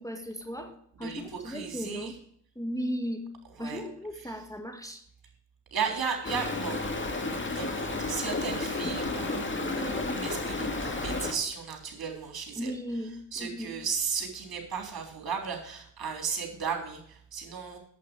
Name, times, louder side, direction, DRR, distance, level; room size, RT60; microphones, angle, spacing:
voice 1, 0.0-2.2 2.6-3.3 3.6-5.0 9.6-10.0 12.4-13.8, equal, 5° left, 5 dB, 1.8 m, -36 dB
voice 2, 1.0-2.1 3.6-3.8 5.7-6.8 7.2-12.7 13.3-17.8, right 6 dB, 55° right, 3 dB, 3.5 m, -35 dB
Stream, 6.2-11.3, left 3 dB, 25° left, 2.2 m, -32 dB
8.4 x 8.0 x 7.3 m, 0.67 s
supercardioid pair, 50°, 44 cm